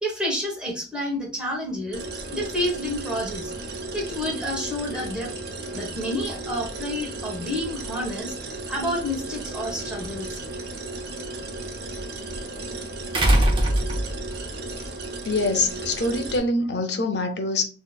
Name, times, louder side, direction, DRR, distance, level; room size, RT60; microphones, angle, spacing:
voice 1, 0.0-3.5 3.9-5.3 5.7-8.4 8.7-10.4, left 1 dB, 5° right, 1.2 m, -29 dB
sound 1, 1.9-16.4, right 2 dB, 65° right, 0.8 m, -35 dB
sound 2, 9.9-10.0 13.1-14.4 15.8-15.9, right 1 dB, 30° right, 0.7 m, -20 dB
voice 2, 15.3-17.7, left 2 dB, 70° left, 0.7 m, -24 dB
3.8 x 3.1 x 2.3 m
head